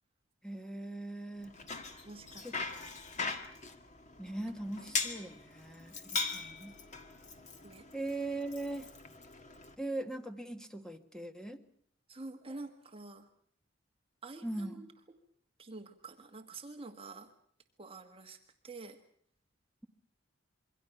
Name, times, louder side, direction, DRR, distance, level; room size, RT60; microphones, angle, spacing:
voice 1, 0.4-1.5 2.4-2.6 4.2-6.7 7.9-8.9 9.8-11.6 14.4-14.9, right 2 dB, 5° left, 7 dB, 1.5 m, -40 dB
Bicycle, 1.4-9.7, left 4 dB, 40° left, 1.8 m, -41 dB
voice 2, 1.9-3.4 7.6-7.9 12.1-13.3 14.2-14.9 15.6-17.3 17.8-18.4 18.6-19.0, right 3 dB, 30° right, 5 dB, 1.5 m, -48 dB
26.5 x 23.0 x 6.0 m, 0.62 s
head